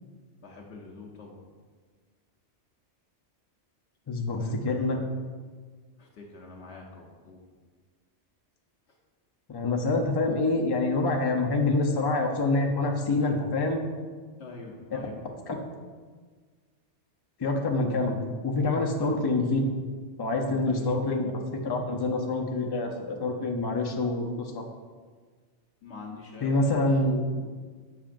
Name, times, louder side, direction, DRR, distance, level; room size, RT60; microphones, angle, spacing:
voice 1, 0.4-1.4 4.3-5.1 6.0-7.4 14.4-15.2 19.0-19.2 20.7-20.9 25.8-26.7, left 3 dB, 75° left, -1 dB, 1.0 m, -45 dB
voice 2, 4.1-5.0 9.5-13.8 14.9-15.0 15.5-15.6 17.4-18.2 18.4-19.6 20.2-21.3 21.6-24.6 26.4-27.5, left 2 dB, 30° left, 1 dB, 0.5 m, -26 dB
7.2 x 6.0 x 2.5 m, 1.5 s
omnidirectional pair, 1.2 m